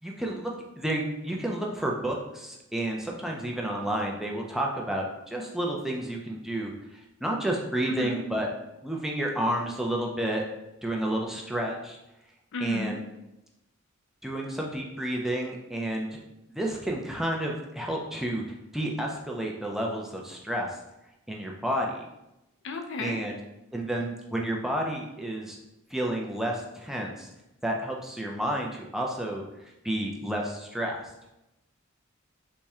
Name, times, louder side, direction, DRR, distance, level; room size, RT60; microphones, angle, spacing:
voice 1, 0.0-8.5 8.8-10.4 10.8-12.0 12.6-13.0 14.2-16.2 16.6-18.4 18.7-20.8 21.3-22.1 23.0-23.4 23.7-25.6 25.9-27.3 27.6-31.1, right 1 dB, ahead, -1 dB, 0.4 m, -31 dB
voice 2, 7.9-8.2 12.5-13.0 22.6-23.2, left 1 dB, 65° left, 5 dB, 0.5 m, -32 dB
4.2 x 2.1 x 3.5 m, 0.92 s
head